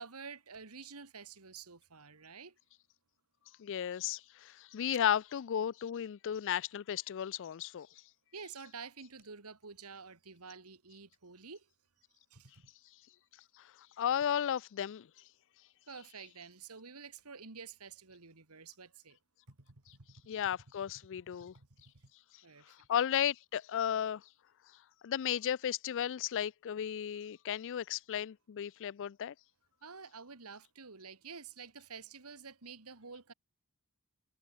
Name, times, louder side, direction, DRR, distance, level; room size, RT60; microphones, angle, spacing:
voice 1, 0.0-2.6 8.3-11.7 12.3-12.5 15.9-19.2 19.5-20.1 21.1-21.2 21.6-21.7 22.4-22.7 29.8-33.3, right 5 dB, 80° right, 2.2 m, -49 dB
voice 2, 3.6-7.9 13.6-13.7 14.0-15.1 20.3-21.6 22.7-24.2 25.0-29.3, left 9 dB, 60° left, 0.4 m, -34 dB
head